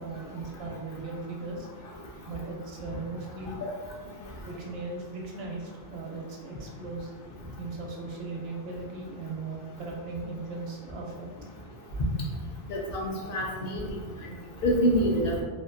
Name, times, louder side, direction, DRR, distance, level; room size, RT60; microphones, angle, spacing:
voice 1, 0.0-1.7 2.3-3.6 4.5-7.1 7.6-11.3, right 3 dB, 75° right, 0 dB, 0.8 m, -38 dB
voice 2, 12.7-13.8 14.6-15.4, equal, 65° left, -2 dB, 0.7 m, -26 dB
2.7 x 2.4 x 2.4 m, 1.4 s
omnidirectional pair, 1.1 m